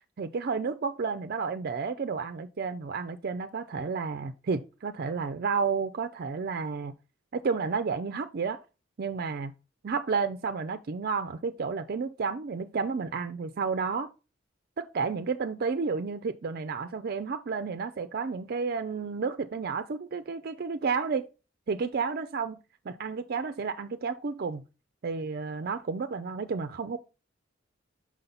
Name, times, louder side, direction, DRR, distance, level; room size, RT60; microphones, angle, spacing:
voice 1, 0.0-6.9 7.3-8.6 9.0-9.5 9.8-14.1 14.8-21.3 21.7-22.6 22.9-24.6 25.0-27.0, right 5 dB, 50° right, 0.4 m, -31 dB
6.1 x 5.6 x 3.9 m
head